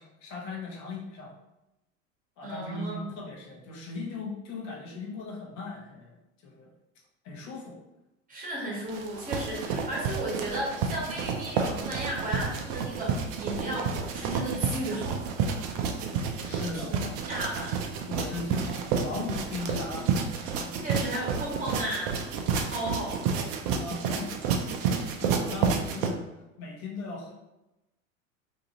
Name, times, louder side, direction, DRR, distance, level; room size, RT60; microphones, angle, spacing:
voice 1, 0.0-1.3 2.4-6.2 6.4-6.7 7.2-7.8 16.4-16.9 18.1-20.7 23.8-24.3 24.8-26.2 26.6-27.3, left 3 dB, 45° left, -1 dB, 0.9 m, -38 dB
voice 2, 2.4-3.1 8.3-15.7 16.7-17.9 20.8-22.2 22.5-23.5, right 1 dB, 20° right, -5 dB, 1.2 m, -34 dB
sound 1, 8.9-26.1, right 6 dB, 45° right, 0.5 m, -30 dB
2.7 x 2.5 x 2.9 m, 0.97 s
hypercardioid pair, 90°, 39 cm